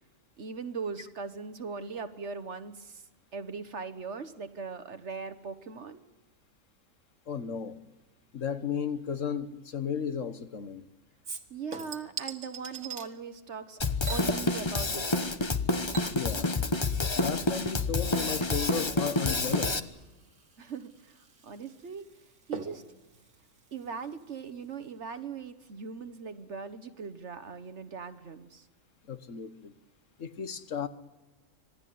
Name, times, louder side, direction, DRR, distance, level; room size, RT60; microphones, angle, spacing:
voice 1, 0.4-3.0 3.3-6.0 11.5-13.8 14.1-15.4 20.6-22.1 22.5-22.8 23.7-28.7, right 5 dB, 60° right, 10 dB, 1.5 m, -40 dB
voice 2, 7.3-7.8 8.3-10.9 16.1-16.5 17.1-19.7 29.1-29.7 30.2-30.9, left 7 dB, 65° left, 11 dB, 1.6 m, -34 dB
Chink clink / Liquid, 11.2-13.1 14.0-15.2 15.5-24.5 24.8-24.9, right 5 dB, 75° right, 2.2 m, -45 dB
Drum kit, 13.8-19.8, left 3 dB, 25° left, 1.0 m, -28 dB
26.5 x 18.0 x 9.4 m, 1.1 s
omnidirectional pair, 1.4 m